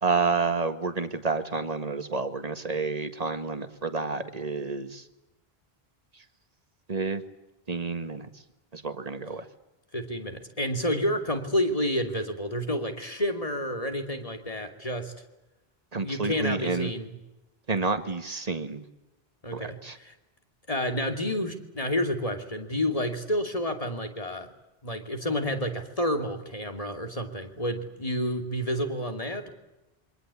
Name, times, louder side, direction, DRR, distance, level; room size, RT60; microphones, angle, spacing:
voice 1, 0.0-5.1 6.1-6.2 6.9-7.2 7.7-8.3 8.7-9.5 15.9-16.9 17.7-18.8 19.5-20.0, right 4 dB, 40° right, 9 dB, 1.8 m, -29 dB
voice 2, 9.9-15.1 16.0-17.1 19.4-20.1 20.7-24.5 24.8-29.5, equal, 35° left, 5 dB, 2.8 m, -29 dB
27.0 x 24.0 x 8.4 m, 1.0 s
omnidirectional pair, 1.0 m